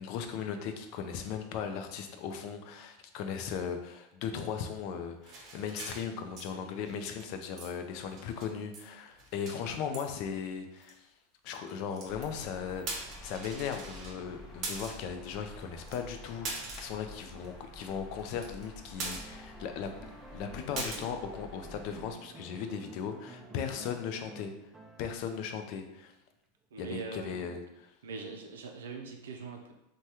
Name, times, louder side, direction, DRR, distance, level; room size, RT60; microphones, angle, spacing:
voice 1, 0.0-11.1 11.4-19.9 20.3-24.5 25.0-26.1 26.8-27.6, left 7 dB, 55° left, 6 dB, 0.4 m, -37 dB
sound 1, 5.2-6.5 6.8-7.3 7.6-7.7 8.0-8.8 9.1-9.6 9.9-10.1 10.8-10.9 11.5-12.4 12.8-14.2 14.6-15.1 15.6-15.7 15.9-16.0 16.4-17.0 17.4-17.5 17.8-17.9 18.2-18.7 19.0-19.6 19.8-19.9 20.8-21.0, right 3 dB, 40° right, 0.8 m, -41 dB
sound 2, 12.0-22.1, left 1 dB, 20° left, 0.7 m, -50 dB
sound 3, 19.0-25.5 27.0-27.1, right 2 dB, 10° right, 0.4 m, -51 dB
voice 2, 26.7-27.4 28.0-29.7, right 4 dB, 85° right, 2 dB, 0.4 m, -42 dB
3.3 x 2.2 x 2.8 m, 0.88 s
hypercardioid pair, 110°, 0 cm